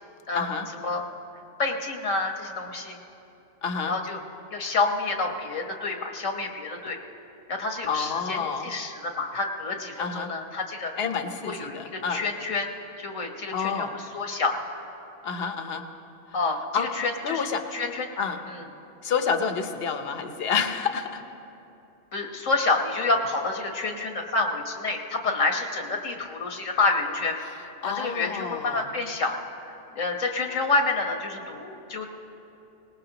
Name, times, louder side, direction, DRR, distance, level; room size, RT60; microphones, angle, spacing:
voice 1, 0.3-0.7 3.6-4.0 7.9-8.8 10.0-10.4 11.0-12.2 13.5-14.0 15.2-15.9 16.3-16.9 17.2-17.9 18.2-18.5 19.0-21.2 27.4-29.0, left 6 dB, 55° left, 7 dB, 1.1 m, -29 dB
voice 2, 1.6-3.0 3.9-4.2 4.5-7.0 7.5-8.4 8.6-10.9 11.5-12.7 13.0-13.9 14.1-14.5 16.3-16.6 17.0-17.4 17.7-18.1 22.1-27.4 27.8-29.4 30.0-32.1, left 3 dB, 85° left, 3 dB, 1.7 m, -28 dB
25.0 x 19.0 x 2.9 m, 2.9 s
omnidirectional pair, 1.3 m